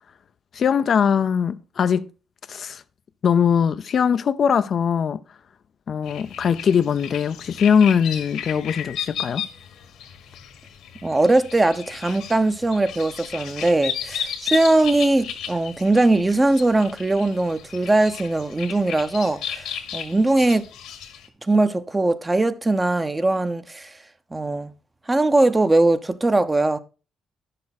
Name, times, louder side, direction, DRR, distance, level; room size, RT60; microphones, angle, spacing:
voice 1, 0.5-2.1 2.5-2.8 3.2-5.2 5.9-9.4, left 7 dB, 55° left, 0.5 m, -21 dB
sound 1, 6.1-21.3, left 8 dB, 85° left, 1.6 m, -34 dB
voice 2, 11.0-20.7 21.5-23.9 24.3-24.7 25.1-26.8, right 2 dB, 20° right, 0.8 m, -20 dB
10.5 x 6.6 x 4.1 m
cardioid pair, 90°, 0 cm